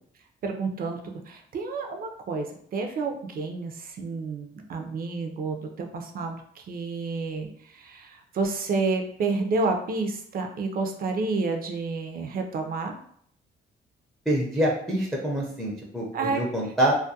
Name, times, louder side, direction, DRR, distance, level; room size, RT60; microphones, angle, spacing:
voice 1, 0.4-12.9 16.1-16.4, right 3 dB, 45° right, 4 dB, 0.5 m, -30 dB
voice 2, 14.3-16.9, right 1 dB, ahead, -3 dB, 0.5 m, -26 dB
2.3 x 2.1 x 2.7 m, 0.64 s
cardioid pair, 90°, 20 cm